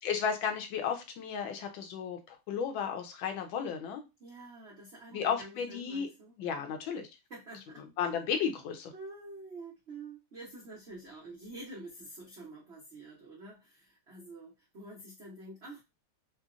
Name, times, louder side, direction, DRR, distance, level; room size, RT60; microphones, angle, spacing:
voice 1, 0.0-4.0 5.1-6.1 6.4-7.1 8.0-8.9, left 7 dB, 75° left, 5 dB, 1.3 m, -33 dB
voice 2, 4.2-6.8 7.3-7.8 8.9-15.8, right 2 dB, 75° right, -5 dB, 0.6 m, -48 dB
3.8 x 2.1 x 2.4 m, 0.24 s
omnidirectional pair, 2.3 m